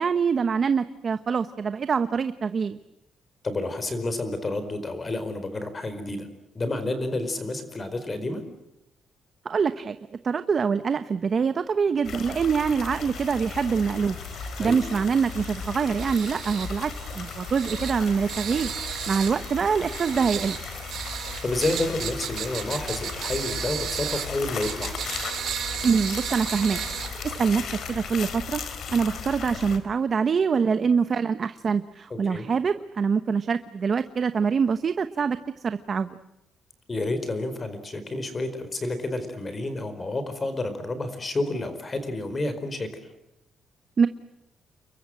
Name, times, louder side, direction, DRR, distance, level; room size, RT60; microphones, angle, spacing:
voice 1, 0.0-2.8 9.4-10.0 10.2-18.7 19.1-20.6 25.8-26.8 27.2-28.6 28.9-35.4 35.6-36.2 44.0-44.1, right 6 dB, 35° right, 11 dB, 1.0 m, -25 dB
voice 2, 3.4-6.3 6.5-8.4 14.6-14.8 21.4-24.9 32.1-32.5 36.9-42.9, left 2 dB, 25° left, 10 dB, 4.6 m, -30 dB
sound 1, 12.0-29.8, left 5 dB, 55° left, 4.0 m, -36 dB
sound 2, 13.1-28.0, right 9 dB, 65° right, 4.2 m, -36 dB
29.5 x 23.0 x 7.7 m, 0.89 s
cardioid pair, 155°, 0 cm